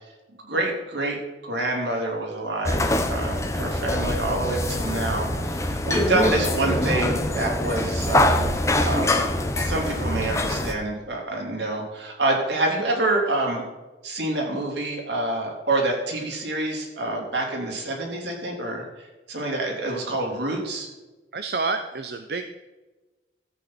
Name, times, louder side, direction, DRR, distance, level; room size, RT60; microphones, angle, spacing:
voice 1, 0.4-1.2 1.4-8.5 8.8-9.3 9.6-13.6 14.0-18.8 19.3-20.9, right 2 dB, 85° right, -1 dB, 3.4 m, -27 dB
sound 1, 2.7-10.7, left 1 dB, 15° left, 0.9 m, -24 dB
voice 2, 21.3-22.5, right 4 dB, 60° right, 8 dB, 0.7 m, -28 dB
14.0 x 8.6 x 4.4 m, 1.2 s
head